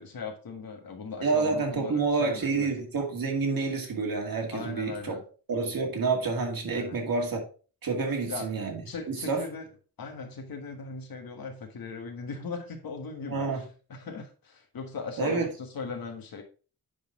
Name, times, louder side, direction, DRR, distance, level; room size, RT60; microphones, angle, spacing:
voice 1, 0.0-2.7 4.5-5.2 6.7-7.0 8.3-8.5 8.8-9.6 10.0-13.6 13.9-16.4, left 4 dB, 80° left, 1.5 m, -39 dB
voice 2, 1.2-5.2 5.5-7.4 7.8-8.8 9.1-9.4 13.3-13.6 15.2-15.5, right 4 dB, 75° right, 2.1 m, -28 dB
10.0 x 4.1 x 3.7 m
wide cardioid pair, 165°, 35 cm